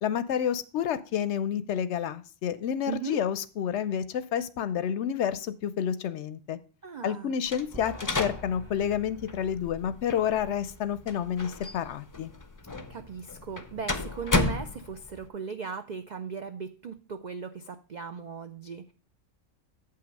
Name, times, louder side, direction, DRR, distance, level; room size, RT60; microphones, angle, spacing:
voice 1, 0.0-6.6 7.0-12.3, left 9 dB, 65° left, 13 dB, 0.8 m, -29 dB
voice 2, 2.9-3.2 6.8-7.4 12.9-18.9, right 6 dB, 70° right, 9 dB, 0.4 m, -38 dB
sound 1, 7.5-15.3, left 3 dB, 25° left, 0.4 m, -34 dB
sound 2, 7.7-13.2, right 2 dB, 20° right, 1.5 m, -50 dB
7.8 x 5.7 x 5.2 m, 0.36 s
omnidirectional pair, 1.4 m